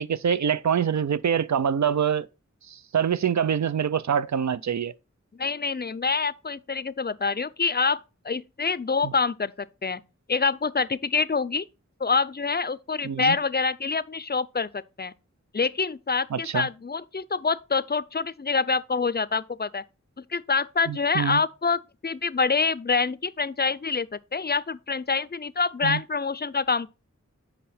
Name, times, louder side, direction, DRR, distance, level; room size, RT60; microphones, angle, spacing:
voice 1, 0.0-2.3 2.7-4.9 9.0-9.1 13.0-13.4 16.3-16.7 20.9-21.4 25.8-26.0, right 8 dB, 70° right, 0.5 m, -25 dB
voice 2, 5.3-10.0 10.3-11.7 12.0-15.1 15.5-19.8 20.2-26.9, left 4 dB, 35° left, 0.4 m, -26 dB
7.5 x 5.5 x 4.2 m
wide cardioid pair, 40°, 29 cm